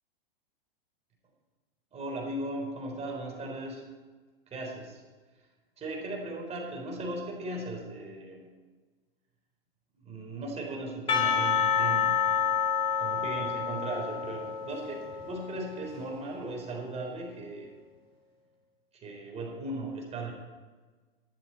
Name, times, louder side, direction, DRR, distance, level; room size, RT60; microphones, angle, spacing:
voice 1, 1.9-3.9 4.5-5.0 5.8-8.5 10.0-12.3 13.0-17.7 18.9-20.3, right 2 dB, 20° right, 0 dB, 3.9 m, -37 dB
Percussion / Church bell, 11.1-16.3, left 7 dB, 20° left, 2.1 m, -29 dB
13.5 x 11.5 x 4.5 m, 1.3 s
hypercardioid pair, 120°, 30 cm